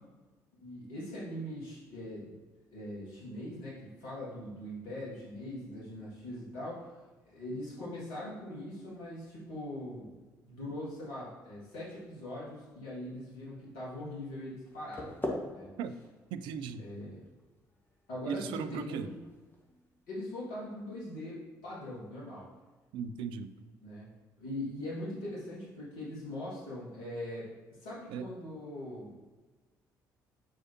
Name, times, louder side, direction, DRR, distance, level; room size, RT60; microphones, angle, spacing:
voice 1, 0.6-2.3 2.7-10.1 10.4-15.1 15.5-15.7 16.8-17.2 18.1-19.2 20.1-21.4 21.6-22.5 23.6-24.1 24.4-27.5 27.8-29.2, left 1 dB, 65° left, -7 dB, 1.9 m, -41 dB
sound 1, 14.6-20.5, left 1 dB, 20° left, 1.5 m, -44 dB
voice 2, 16.3-16.8 18.3-19.1 22.9-23.5 28.1-28.3, right 7 dB, 55° right, 11 dB, 0.4 m, -37 dB
8.3 x 4.8 x 2.8 m, 1.3 s
figure-of-eight pair, 45°, 10 cm